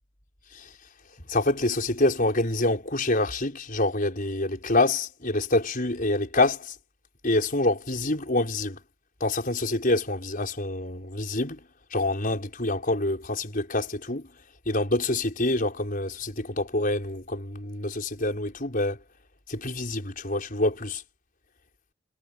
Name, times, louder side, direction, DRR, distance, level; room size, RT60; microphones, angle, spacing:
voice 1, 1.3-6.8 7.2-8.8 9.2-11.6 11.9-14.3 14.7-19.0 19.5-21.0, left 2 dB, 40° left, 5.8 m, -26 dB
head